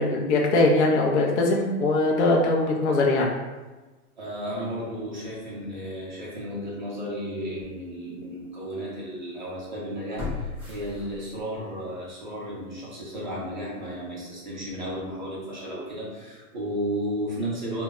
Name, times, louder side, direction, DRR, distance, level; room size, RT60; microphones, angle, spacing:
voice 1, 0.0-3.3, left 2 dB, 50° left, -2 dB, 0.4 m, -21 dB
voice 2, 4.2-17.8, equal, 35° right, -6 dB, 0.4 m, -33 dB
sound 1, 6.9-7.0 7.6-7.7 10.2-11.6 12.0-12.1, left 4 dB, 15° left, 0.7 m, -35 dB
2.1 x 2.0 x 3.5 m, 1.2 s
hypercardioid pair, 175°, 45 cm